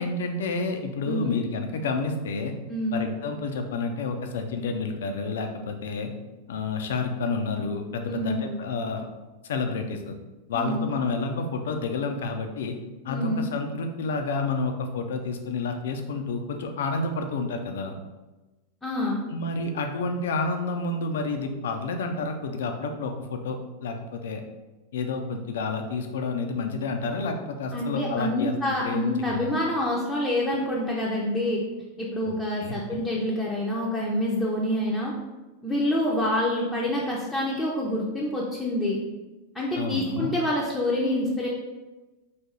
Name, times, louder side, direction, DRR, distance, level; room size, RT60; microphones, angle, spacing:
voice 1, 0.0-2.5 2.9-6.1 6.5-9.1 9.4-10.1 10.5-12.8 13.0-18.0 19.3-24.4 24.9-29.5 32.3-32.4 32.6-32.8 39.8-40.3, left 3 dB, 60° left, 5 dB, 0.5 m, -29 dB
voice 2, 1.1-1.4 2.7-3.0 8.1-8.5 10.5-10.9 13.1-13.5 18.8-19.2 27.7-31.6 32.0-35.1 35.6-39.0 39.5-41.5, left 1 dB, 5° left, -5 dB, 0.7 m, -27 dB
4.2 x 2.7 x 3.6 m, 1.1 s
figure-of-eight pair, 90°, 0 cm